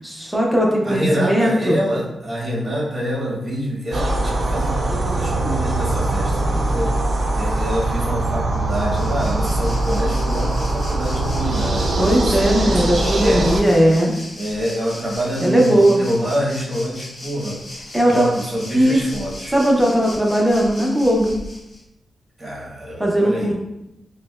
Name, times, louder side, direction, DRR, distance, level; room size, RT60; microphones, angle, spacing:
voice 1, 0.0-1.8 12.0-14.1 15.4-16.0 17.9-18.3 18.7-19.1 19.5-21.3 23.0-23.5, right 1 dB, 5° right, -2 dB, 0.6 m, -18 dB
voice 2, 0.8-6.9 7.4-12.4 12.6-13.7 14.4-17.6 18.1-19.5 22.4-23.5, equal, 25° right, -5 dB, 1.2 m, -26 dB
sound 1, 3.9-13.6, right 2 dB, 50° right, 0.5 m, -22 dB
Waves surf, 8.5-21.8, left 1 dB, 50° left, 0.9 m, -37 dB
4.7 x 2.1 x 2.4 m, 0.88 s
wide cardioid pair, 110°, 0 cm